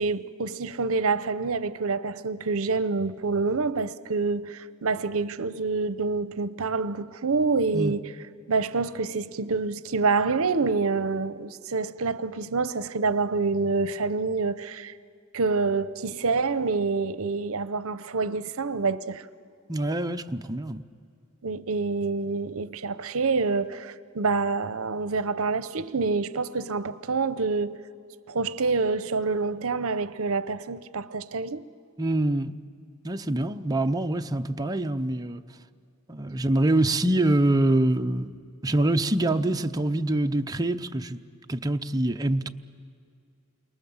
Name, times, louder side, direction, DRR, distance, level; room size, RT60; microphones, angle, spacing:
voice 1, 0.0-8.1 8.5-14.9 15.3-19.2 21.4-27.8 28.3-31.6, right 4 dB, 70° right, 0.8 m, -27 dB
voice 2, 19.7-20.8 32.0-32.6 33.0-35.4 36.1-38.3 38.6-41.2 41.5-42.5, right 1 dB, 15° right, 0.7 m, -25 dB
29.0 x 23.5 x 7.2 m
head